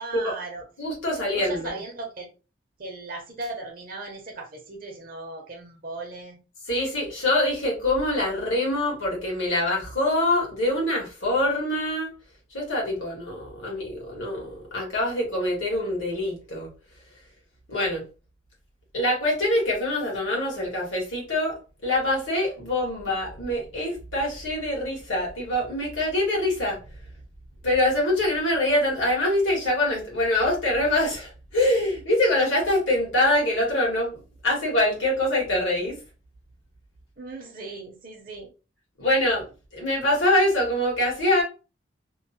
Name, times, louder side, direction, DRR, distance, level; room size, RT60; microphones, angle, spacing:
voice 1, 0.0-0.6 1.3-2.3 2.8-6.4 37.2-38.5, right 2 dB, 45° right, 0.6 m, -37 dB
voice 2, 0.8-1.7 6.7-12.1 12.5-16.7 17.7-18.1 18.9-26.8 27.6-36.0 39.0-39.5 39.7-41.4, left 1 dB, 75° left, 1.5 m, -24 dB
3.0 x 2.1 x 2.8 m
head